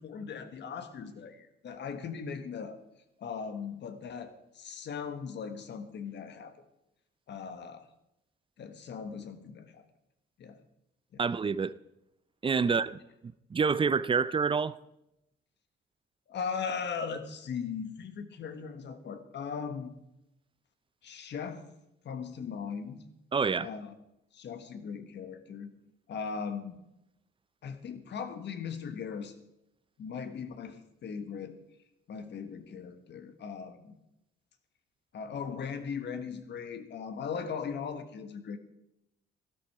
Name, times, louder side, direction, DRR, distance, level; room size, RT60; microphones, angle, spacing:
voice 1, 0.0-2.8 3.2-6.6 7.3-7.9 8.6-9.8 10.4-10.6 11.1-11.2 12.6-12.8 16.3-19.9 21.0-21.6 22.0-23.0 23.6-23.9 24.3-25.7 26.1-26.8 27.6-29.3 30.0-31.6 32.1-33.9 35.1-38.6, left 6 dB, 60° left, 1.5 m, -39 dB
voice 2, 11.2-11.7 12.4-13.0 13.5-14.8 23.3-23.7, right 5 dB, 25° right, 0.5 m, -27 dB
12.5 x 12.0 x 4.8 m
cardioid pair, 90°, 20 cm